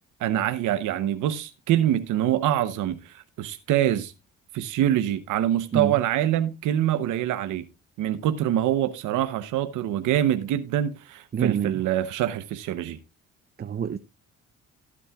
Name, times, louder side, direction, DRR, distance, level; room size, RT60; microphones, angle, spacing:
voice 1, 0.2-4.1 4.5-7.6 8.0-13.0, right 11 dB, 85° right, 0.9 m, -25 dB
voice 2, 11.3-11.8 13.6-14.0, right 8 dB, 35° right, 0.6 m, -27 dB
17.5 x 8.6 x 2.3 m
cardioid pair, 90°, 30 cm